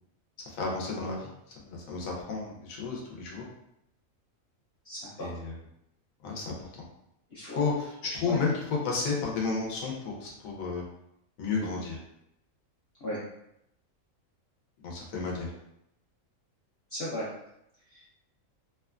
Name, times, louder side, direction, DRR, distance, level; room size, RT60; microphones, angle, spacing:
voice 1, 0.5-3.5 5.2-5.5 6.2-6.7 7.5-10.8 11.4-12.0 14.8-15.5, left 4 dB, 85° left, -2 dB, 1.1 m, -32 dB
voice 2, 4.8-5.3 7.3-7.7 8.2-8.4 13.0-13.2 16.9-17.3 17.9-18.0, left 1 dB, 55° left, -8 dB, 0.8 m, -36 dB
3.0 x 2.2 x 2.3 m, 0.80 s
omnidirectional pair, 1.4 m